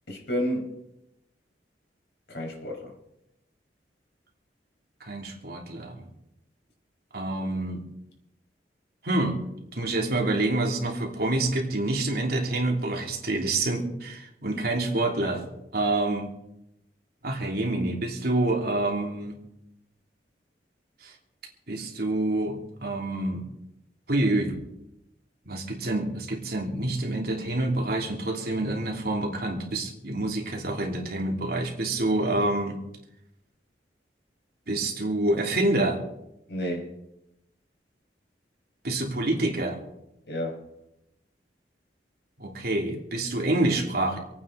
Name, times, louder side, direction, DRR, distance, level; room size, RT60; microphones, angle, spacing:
voice 1, 0.1-0.8 2.3-2.9 14.5-14.6 36.5-36.9 40.3-40.6, equal, 70° left, 1 dB, 5.0 m, -31 dB
voice 2, 5.0-6.1 7.1-7.8 9.0-9.4 9.7-15.5 15.7-16.3 17.2-19.3 21.0-21.1 21.7-22.5 22.8-23.4 24.1-24.5 25.5-32.8 34.7-36.0 38.8-39.8 42.4-44.2, right 2 dB, 60° right, 0 dB, 3.2 m, -27 dB
27.5 x 9.5 x 4.1 m, 0.86 s
head